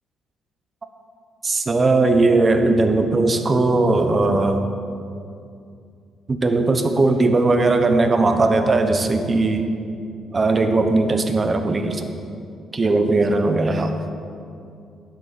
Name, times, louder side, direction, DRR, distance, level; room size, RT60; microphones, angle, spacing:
voice 1, 1.4-4.7 6.3-9.6 10.3-12.1 12.7-13.9, right 2 dB, 30° right, 7 dB, 1.0 m, -18 dB
12.0 x 10.5 x 4.3 m, 2.4 s
cardioid pair, 90°, 0 cm